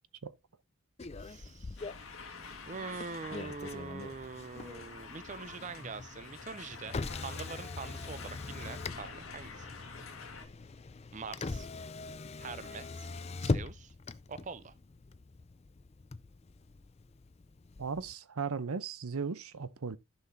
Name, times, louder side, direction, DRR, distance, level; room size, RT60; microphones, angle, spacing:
Motor vehicle (road), 1.0-18.1, left 3 dB, 30° left, 0.4 m, -42 dB
voice 1, 1.2-1.9 2.7-9.7 11.1-11.7 12.4-13.1 13.4-13.9 14.3-14.7, right 4 dB, 35° right, 0.5 m, -44 dB
sound 1, 1.8-10.5, left 4 dB, 70° left, 1.7 m, -48 dB
voice 2, 17.8-20.0, right 5 dB, 85° right, 0.7 m, -36 dB
14.5 x 5.9 x 2.7 m
head